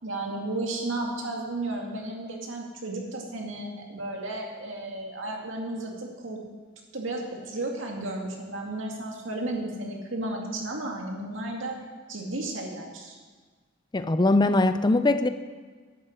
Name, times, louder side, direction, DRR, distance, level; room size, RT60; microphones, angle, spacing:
voice 1, 0.0-6.4 6.9-11.8 12.1-13.2, right 2 dB, 80° right, 0 dB, 2.3 m, -33 dB
voice 2, 13.9-15.3, left 2 dB, 20° left, 11 dB, 0.4 m, -21 dB
11.0 x 8.8 x 7.7 m, 1.4 s
head